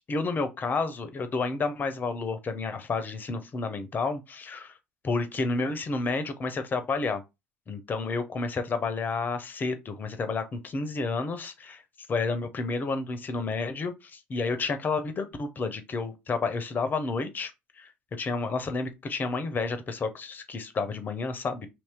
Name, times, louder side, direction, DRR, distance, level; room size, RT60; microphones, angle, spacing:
voice 1, 0.1-4.7 5.0-7.2 7.7-11.8 12.1-17.5 17.8-21.7, left 4 dB, 35° left, 0.8 m, -30 dB
2.9 x 2.8 x 3.5 m
hypercardioid pair, 60°, 5 cm